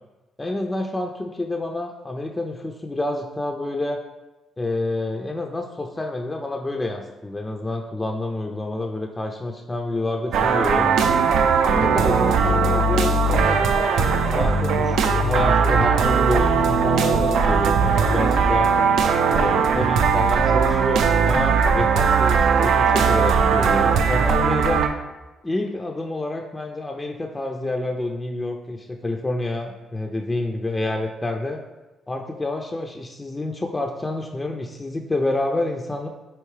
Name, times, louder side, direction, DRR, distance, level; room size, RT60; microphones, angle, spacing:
voice 1, 0.4-4.0 4.6-11.0 11.6-18.7 19.3-24.8 25.4-31.6 32.1-36.1, left 2 dB, 15° left, 2 dB, 0.3 m, -28 dB
sound 1, 10.3-24.9, right 5 dB, 75° right, 0.3 m, -19 dB
4.6 x 3.0 x 3.1 m, 1.1 s
cardioid pair, 90°, 0 cm